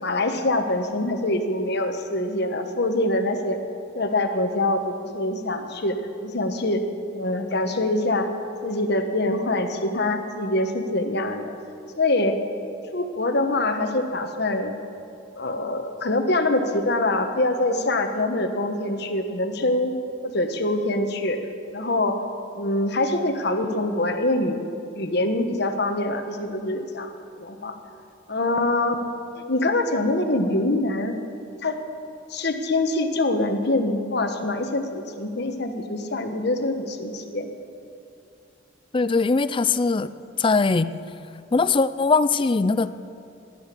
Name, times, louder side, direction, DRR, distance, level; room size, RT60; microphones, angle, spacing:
voice 1, 0.0-3.6 3.9-5.9 6.2-6.8 7.1-8.3 8.6-11.5 12.0-12.4 12.9-14.7 15.4-19.9 20.2-21.4 21.7-22.2 22.6-24.6 24.9-27.8 28.3-29.0 29.5-31.1 31.6-31.8 32.3-37.5, left 2 dB, 55° left, 6 dB, 1.3 m, -24 dB
voice 2, 38.9-40.1 40.4-40.9 41.5-42.9, left 4 dB, 25° left, 14 dB, 0.4 m, -20 dB
18.0 x 10.5 x 6.9 m, 2.5 s
head